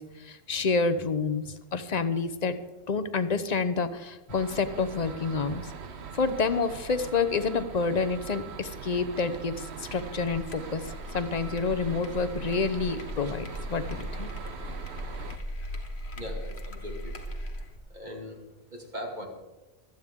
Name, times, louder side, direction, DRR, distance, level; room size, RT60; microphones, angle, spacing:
voice 1, 0.0-2.5 2.9-5.7 6.1-10.9 11.1-14.3, left 4 dB, 45° left, 11 dB, 0.9 m, -28 dB
sound 1, 4.3-15.4, right 6 dB, 85° right, 1.2 m, -42 dB
sound 2, 9.9-17.8, equal, 80° left, 1.8 m, -39 dB
voice 2, 16.2-17.1 17.9-18.4 18.7-19.3, equal, 45° right, 1 dB, 2.5 m, -39 dB
25.0 x 9.1 x 3.7 m, 1.1 s
omnidirectional pair, 1.1 m